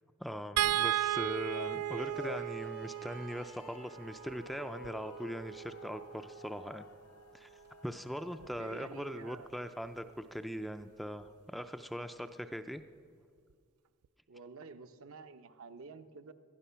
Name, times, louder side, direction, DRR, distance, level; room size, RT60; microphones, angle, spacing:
voice 1, 0.2-6.9 7.3-7.5 7.8-12.8, equal, ahead, 8 dB, 0.3 m, -41 dB
sound 1, 0.6-6.9 8.4-8.6 8.9-9.1, right 13 dB, 90° right, 0.4 m, -36 dB
sound 2, 1.0-9.5, left 5 dB, 80° left, 0.6 m, -52 dB
voice 2, 8.4-9.5 14.3-16.3, right 4 dB, 70° right, 8 dB, 0.7 m, -49 dB
19.0 x 12.0 x 5.7 m, 2.1 s
head